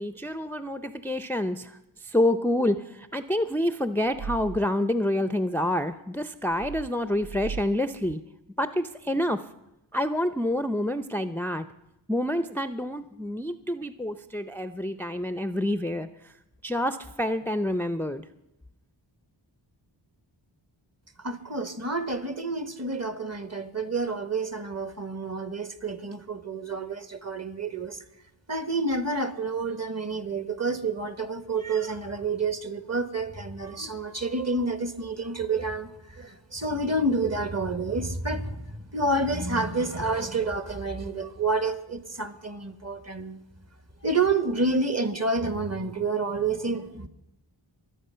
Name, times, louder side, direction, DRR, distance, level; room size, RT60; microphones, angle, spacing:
voice 1, 0.0-8.2 8.6-9.4 9.9-11.6 12.1-16.1 16.6-18.2, left 1 dB, 5° left, 0.5 m, -28 dB
sound 1, 4.1-4.7 6.5-7.7 8.0-8.1, right 6 dB, 60° right, 0.5 m, -38 dB
voice 2, 21.2-28.0 28.5-43.4 44.0-47.1, right 3 dB, 35° right, 1.3 m, -29 dB
23.5 x 8.3 x 5.6 m
wide cardioid pair, 70°, 46 cm